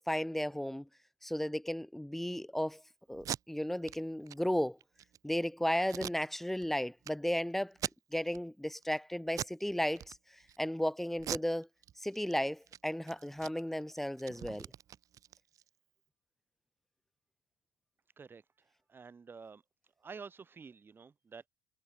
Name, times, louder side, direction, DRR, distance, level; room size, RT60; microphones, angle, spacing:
voice 1, 0.1-0.9 1.2-2.8 3.1-4.8 5.2-7.7 8.1-10.1 10.6-11.7 12.0-14.7, equal, 5° left, 0.9 m, -34 dB
Packing tape duct tape, 3.1-3.4 3.8-4.0 4.3-4.4 4.8-5.2 5.9-6.7 7.0-7.1 7.7-8.4 8.8-9.0 9.3-9.6 9.9-10.6 11.2-12.3 12.6-12.8 13.1-15.7, right 10 dB, 40° right, 1.2 m, -41 dB
voice 2, 18.9-19.6 20.0-21.5, right 5 dB, 25° right, 5.3 m, -49 dB
hypercardioid pair, 75°, 9 cm